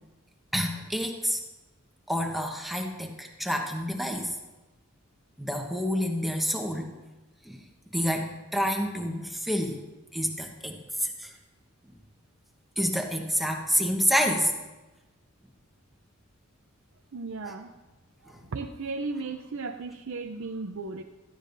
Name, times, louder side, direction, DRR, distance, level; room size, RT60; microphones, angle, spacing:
voice 1, 0.5-1.4 2.1-4.3 5.4-6.9 7.4-7.6 7.9-9.8 10.1-11.3 12.8-14.5 18.3-18.4, equal, ahead, 2 dB, 1.2 m, -28 dB
voice 2, 17.1-17.7 18.2-21.0, right 3 dB, 65° right, 4 dB, 0.6 m, -35 dB
17.0 x 13.5 x 2.7 m, 1.1 s
head